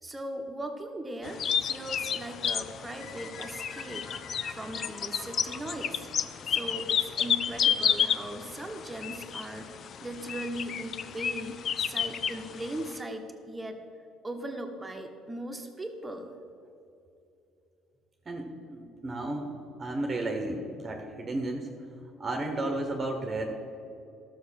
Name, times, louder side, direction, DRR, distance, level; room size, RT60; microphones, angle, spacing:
voice 1, 0.0-6.1 6.4-13.8 14.2-16.3, right 1 dB, 10° right, 4 dB, 1.3 m, -39 dB
sound 1, 1.2-13.0, left 8 dB, 50° left, 0.5 m, -31 dB
sound 2, 3.0-7.1, left 4 dB, 30° left, 1.2 m, -46 dB
voice 2, 18.3-21.7 22.2-23.5, right 2 dB, 30° right, 3 dB, 1.2 m, -33 dB
12.5 x 6.6 x 6.5 m, 2.7 s
cardioid pair, 110°, 0 cm